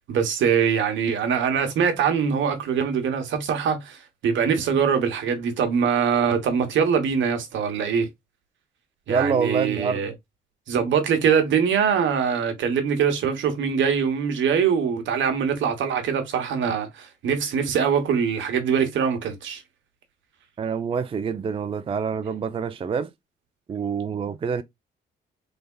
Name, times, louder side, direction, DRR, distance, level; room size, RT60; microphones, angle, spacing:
voice 1, 0.1-8.1 9.1-10.1 10.7-19.6, right 7 dB, 70° right, 1.0 m, -23 dB
voice 2, 9.1-10.0 20.6-23.1 23.7-24.6, right 6 dB, 30° right, 0.4 m, -26 dB
3.4 x 3.3 x 2.2 m
cardioid pair, 90°, 20 cm